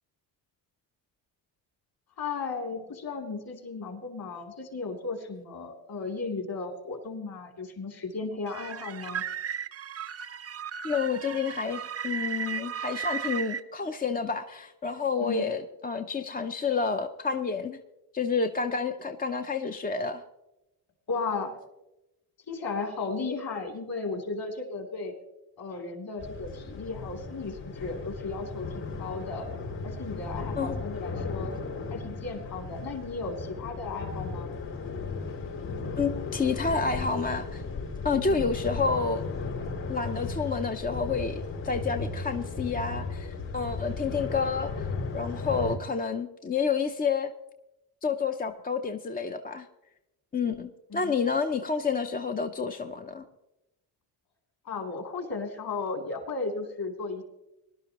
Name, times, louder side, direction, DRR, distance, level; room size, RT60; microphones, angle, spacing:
voice 1, 2.2-9.2 15.2-15.5 21.1-21.6 22.5-25.1 25.6-29.5 29.8-31.5 31.9-34.5 38.1-38.4 50.9-51.1 54.6-57.2, left 4 dB, 45° left, 3 dB, 3.1 m, -35 dB
sound 1, 8.5-13.6, right 7 dB, 30° right, 0.6 m, -35 dB
voice 2, 10.8-17.8 18.1-20.2 30.6-30.8 36.0-37.6 38.0-39.2 39.9-44.9 45.1-47.3 48.0-49.7 50.3-53.2, left 5 dB, 20° left, 6 dB, 0.6 m, -29 dB
sound 2, 26.2-45.8, left 3 dB, 70° left, 5.1 m, -35 dB
20.0 x 11.5 x 3.0 m, 0.93 s
supercardioid pair, 80°, 47 cm